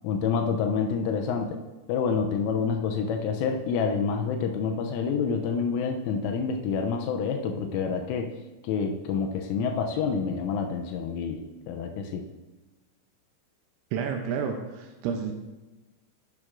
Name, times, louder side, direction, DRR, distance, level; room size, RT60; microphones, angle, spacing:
voice 1, 0.0-1.6 1.9-8.3 8.6-12.2, left 5 dB, 85° left, 4 dB, 3.1 m, -28 dB
voice 2, 13.9-15.3, right 6 dB, 80° right, 4 dB, 2.8 m, -30 dB
10.5 x 8.9 x 2.5 m, 1.1 s
omnidirectional pair, 5.8 m